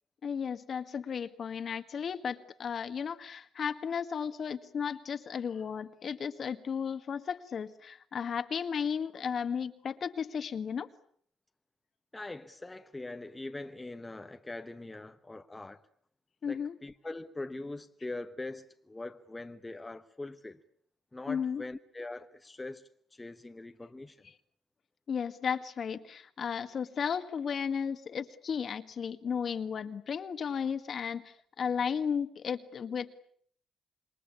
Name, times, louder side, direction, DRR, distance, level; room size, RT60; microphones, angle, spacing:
voice 1, 0.2-10.9 16.4-16.8 21.3-21.6 25.1-33.1, left 7 dB, 50° left, 1.8 m, -34 dB
voice 2, 12.1-15.8 16.5-20.6 21.1-24.3, left 2 dB, 15° left, 1.1 m, -42 dB
27.0 x 21.5 x 8.5 m
cardioid pair, 90°, 0 cm